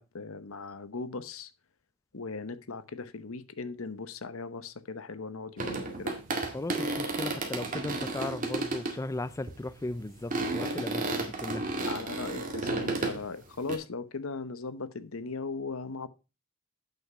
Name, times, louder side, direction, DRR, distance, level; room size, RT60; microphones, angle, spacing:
voice 1, 0.0-1.5 2.1-6.2 10.6-10.8 11.8-16.1, left 4 dB, 70° left, 0.9 m, -38 dB
sound 1, 5.6-9.0 9.5-9.7 10.3-13.2 13.7-13.8, right 2 dB, 40° right, 2.1 m, -32 dB
voice 2, 6.5-11.7, left 2 dB, 15° left, 0.4 m, -36 dB
9.0 x 6.0 x 5.4 m
head